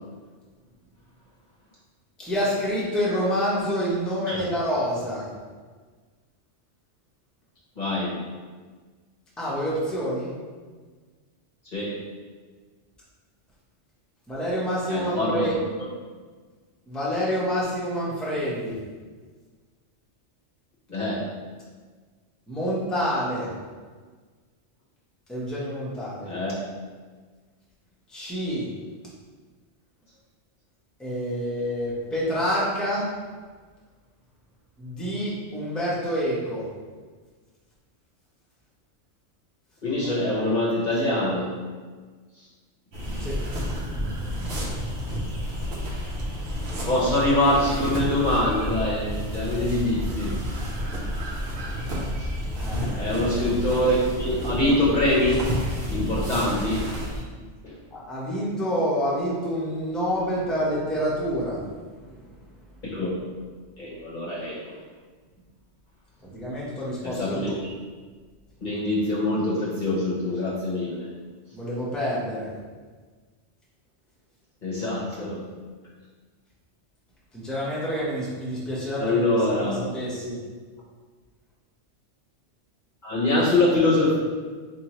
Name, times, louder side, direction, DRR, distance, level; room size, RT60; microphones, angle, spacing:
voice 1, 2.2-5.3 9.4-10.3 14.3-15.6 16.9-18.8 22.5-23.5 25.3-26.3 28.1-28.7 31.0-33.1 34.8-36.7 43.2-43.4 52.5-53.2 57.9-61.7 62.0-62.3 66.2-67.6 71.5-72.5 77.3-80.4, equal, ahead, -7 dB, 0.7 m, -28 dB
voice 2, 7.8-8.2 11.7-12.0 14.9-15.6 20.9-21.3 26.3-26.5 39.8-41.5 46.8-50.3 52.2-52.3 52.9-55.4 55.9-56.9 57.6-57.8 62.8-63.1 63.8-64.6 67.0-67.5 68.6-71.1 74.6-75.4 79.0-79.8 83.0-84.1, left 1 dB, 45° left, -7 dB, 0.8 m, -24 dB
sound 1, 42.9-57.2, equal, 65° right, 1.0 m, -30 dB
4.3 x 2.7 x 2.9 m, 1.5 s
omnidirectional pair, 1.2 m